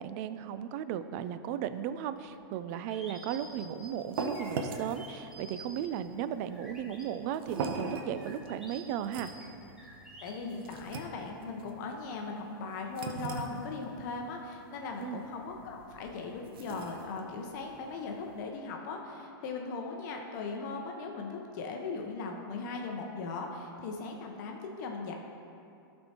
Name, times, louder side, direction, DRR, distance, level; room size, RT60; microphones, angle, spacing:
voice 1, 0.0-9.3 15.0-15.2, right 9 dB, 45° right, 12 dB, 0.4 m, -36 dB
sound 1, 2.2-7.0 7.5-10.3, right 1 dB, 5° right, 1.3 m, -50 dB
sound 2, 3.4-18.4, right 4 dB, 70° right, 0.7 m, -42 dB
voice 2, 10.2-25.2, left 4 dB, 50° left, 2 dB, 0.8 m, -39 dB
12.0 x 4.4 x 2.9 m, 2.6 s
hypercardioid pair, 135°, 12 cm